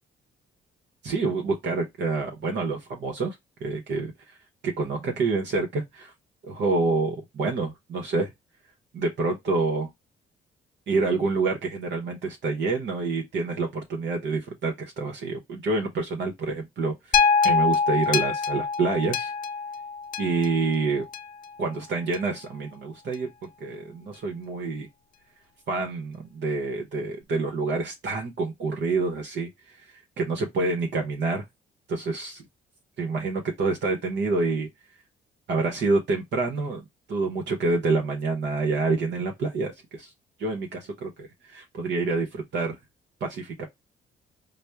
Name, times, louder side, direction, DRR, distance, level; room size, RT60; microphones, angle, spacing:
voice 1, 1.0-3.4 3.6-4.1 4.6-6.1 6.4-8.3 8.9-9.9 10.9-17.2 17.4-19.3 20.2-21.1 21.6-23.3 23.6-24.9 25.7-29.7 30.2-31.4 31.9-32.5 33.0-34.7 35.5-36.8 37.1-40.1 40.4-42.8 43.2-43.7, right 3 dB, 65° right, 0.9 m, -27 dB
sound 1, 17.1-21.5 22.1-22.2, left 5 dB, 45° left, 0.5 m, -25 dB
4.2 x 2.0 x 3.4 m
cardioid pair, 90°, 20 cm